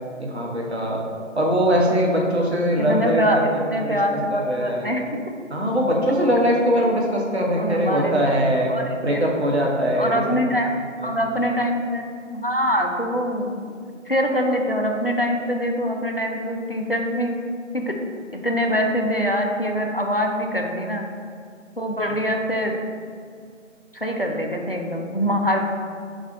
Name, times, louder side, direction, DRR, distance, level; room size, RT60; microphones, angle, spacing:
voice 1, 0.2-1.0 1.3-3.2 3.7-4.9 5.5-8.7 9.0-10.4 11.0-11.1, equal, 55° right, -2 dB, 0.9 m, -21 dB
voice 2, 2.8-5.0 7.6-8.1 8.7-9.2 10.0-10.7 11.0-12.0 12.3-13.7 14.1-17.3 17.7-17.9 18.3-21.1 21.8-22.8 23.9-25.6, equal, 50° left, 1 dB, 0.4 m, -24 dB
4.1 x 2.6 x 4.8 m, 2.2 s
figure-of-eight pair, 180°, 39 cm